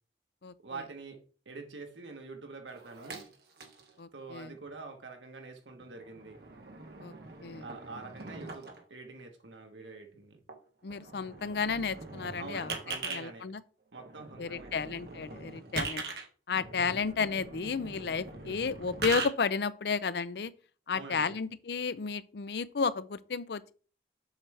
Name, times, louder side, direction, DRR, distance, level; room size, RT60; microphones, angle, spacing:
voice 1, 0.6-3.2 4.1-6.4 7.6-10.4 12.4-13.5 13.9-15.0 16.7-17.0 20.9-21.4, right 3 dB, 90° right, 1.4 m, -46 dB
sound 1, 2.7-3.9 4.5-4.7 5.7-8.8 10.5-10.6 10.9-13.2 13.9-19.3, right 3 dB, 60° right, 1.5 m, -41 dB
voice 2, 4.0-4.5 7.0-7.1 7.4-7.6 10.8-12.7 13.1-13.6 14.4-16.0 16.5-20.5 20.9-23.7, left 5 dB, 65° left, 0.5 m, -32 dB
7.2 x 3.3 x 6.1 m
head